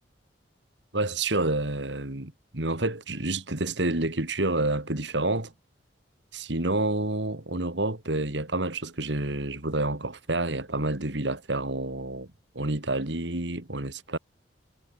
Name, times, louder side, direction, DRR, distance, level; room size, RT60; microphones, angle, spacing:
voice 1, 0.9-5.5 6.3-12.3 12.5-14.2, right 2 dB, 70° right, 2.9 m, -29 dB
head